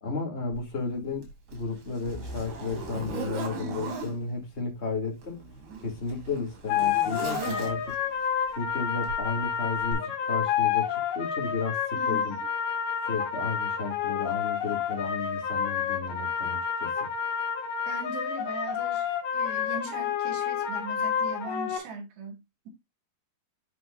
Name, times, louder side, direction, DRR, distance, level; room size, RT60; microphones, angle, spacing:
voice 1, 0.0-5.4 5.8-7.9 8.5-12.4 13.0-17.1, left 4 dB, 20° left, 2.4 m, -33 dB
Zipper (clothing), 0.5-0.6 1.2-4.2 5.1-8.1 9.1-9.3 9.9-10.0, right 4 dB, 80° right, 5.2 m, -38 dB
voice 2, 3.5-4.1 12.0-12.2 17.9-19.1 19.3-22.7, right 3 dB, 50° right, 3.3 m, -40 dB
sound 1, 6.7-21.8, left 8 dB, 70° left, 4.2 m, -29 dB
9.1 x 6.3 x 2.6 m
omnidirectional pair, 4.5 m